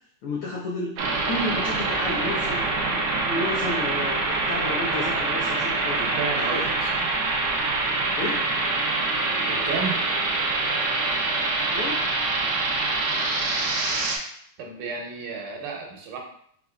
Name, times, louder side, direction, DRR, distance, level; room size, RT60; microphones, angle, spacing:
voice 1, 0.2-6.0 6.4-6.6 8.2-8.5 11.7-12.0, left 2 dB, 80° left, -5 dB, 1.3 m, -32 dB
sound 1, 1.0-14.2, right 3 dB, 75° right, 1.5 m, -25 dB
voice 2, 5.9-7.0 9.5-10.0 14.6-16.2, right 4 dB, 90° right, 1 dB, 2.3 m, -32 dB
5.4 x 3.5 x 2.3 m, 0.65 s
omnidirectional pair, 3.4 m